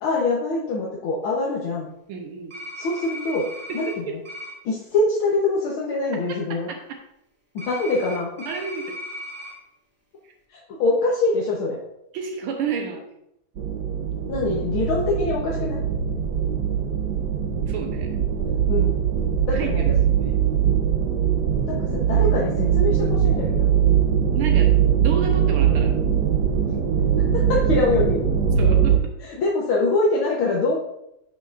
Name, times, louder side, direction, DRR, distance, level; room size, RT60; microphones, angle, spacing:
voice 1, 0.0-1.9 2.8-3.5 3.7-4.2 4.7-6.7 7.6-8.5 10.5-11.8 14.3-15.8 18.7-19.0 19.5-19.8 21.7-23.7 27.2-28.2 29.2-30.8, left 3 dB, 75° left, -4 dB, 1.9 m, -24 dB
voice 2, 2.1-2.5 3.7-4.1 6.7-7.0 8.5-8.9 12.1-13.0 17.7-18.1 19.5-20.3 24.3-25.9 28.6-29.1, right 6 dB, 85° right, 3 dB, 1.8 m, -31 dB
sound 1, 2.5-3.9 4.2-4.5 7.6-9.5, left 1 dB, 5° right, 1.8 m, -36 dB
sound 2, 13.6-29.0, right 8 dB, 60° right, 1.2 m, -21 dB
11.5 x 6.5 x 2.5 m, 0.80 s
omnidirectional pair, 2.3 m